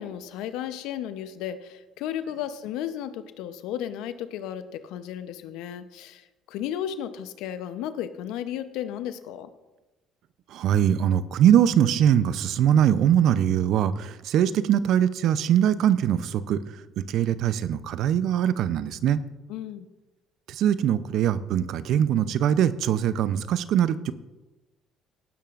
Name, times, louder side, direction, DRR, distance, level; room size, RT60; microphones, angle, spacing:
voice 1, 0.0-9.5 19.5-19.9, left 10 dB, 75° left, 11 dB, 0.8 m, -34 dB
voice 2, 10.5-16.6 17.0-19.2 20.5-24.1, right 10 dB, 70° right, 15 dB, 0.6 m, -22 dB
18.0 x 10.0 x 2.5 m, 1.1 s
supercardioid pair, 65°, 0 cm